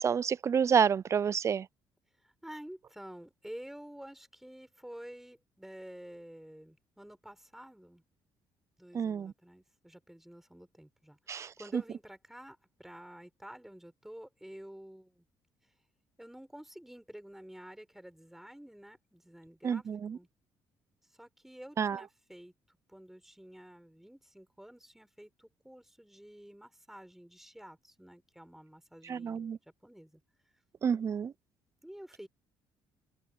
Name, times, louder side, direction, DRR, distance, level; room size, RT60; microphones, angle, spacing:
voice 1, 0.0-1.7 8.9-9.3 11.3-11.8 19.6-20.2 21.8-22.0 29.0-29.6 30.8-31.3, right 7 dB, 35° right, 0.3 m, -29 dB
voice 2, 2.2-8.0 8.8-15.3 16.2-19.9 20.1-20.3 21.2-29.5 29.8-30.2 31.8-32.3, equal, 5° right, 5.6 m, -50 dB
open air
cardioid pair, 100°, 9 cm